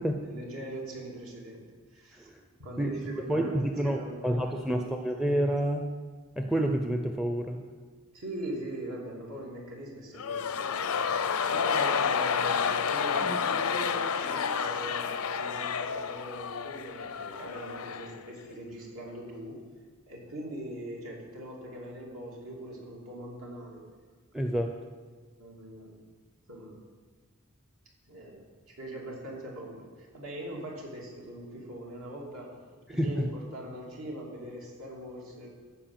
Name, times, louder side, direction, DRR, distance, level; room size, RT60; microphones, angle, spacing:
voice 1, 0.2-1.7 1.9-2.3 2.6-4.9 8.1-11.0 11.5-19.6 20.1-23.8 24.4-24.8 25.4-26.0 26.5-26.7 28.1-28.4 28.7-32.6 32.9-35.5, right 1 dB, 75° right, -2 dB, 2.8 m, -41 dB
voice 2, 3.3-5.9 6.4-7.6 13.2-13.4 24.3-24.8 32.9-33.3, right 1 dB, ahead, 4 dB, 0.5 m, -29 dB
sound 1, 10.1-18.2 18.5-18.6, left 6 dB, 80° left, 0.6 m, -30 dB
14.0 x 4.8 x 7.4 m, 1.5 s
head